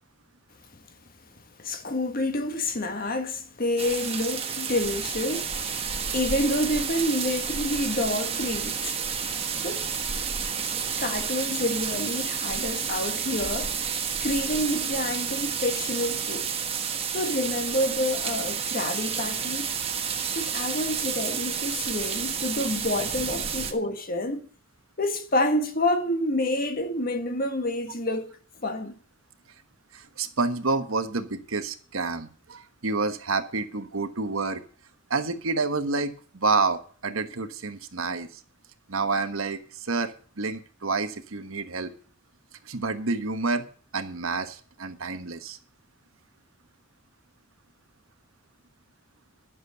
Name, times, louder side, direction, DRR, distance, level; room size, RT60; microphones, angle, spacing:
voice 1, 1.6-9.0 9.6-9.9 10.9-16.5 17.1-19.7 20.3-24.5 25.0-28.4 28.6-28.9, left 1 dB, 45° left, 1.6 m, -28 dB
sound 1, 3.8-23.7, right 7 dB, 30° right, 1.3 m, -30 dB
voice 2, 29.9-34.6 35.1-38.4 38.9-41.9 42.6-43.7 43.9-45.6, right 3 dB, 80° right, 1.3 m, -29 dB
11.0 x 7.6 x 6.7 m
head